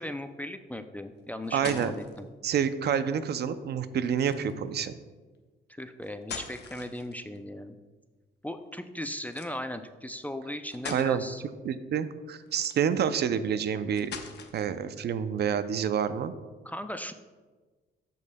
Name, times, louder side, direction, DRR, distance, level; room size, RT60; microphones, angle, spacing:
voice 1, 0.0-2.3 5.7-7.8 8.4-11.4 16.6-17.1, left 1 dB, 10° left, 8 dB, 0.4 m, -37 dB
sound 1, 1.2-2.2 4.1-4.6 6.0-7.4 9.3-9.5 10.2-10.3 10.7-11.1 12.4-13.1 13.9-14.8, left 6 dB, 60° left, 0.8 m, -42 dB
voice 2, 1.5-1.9 2.4-4.9 10.9-11.2 11.6-14.1 14.5-16.3, right 8 dB, 55° right, 12 dB, 0.5 m, -28 dB
13.0 x 5.3 x 2.2 m, 1.3 s
cardioid pair, 90°, 20 cm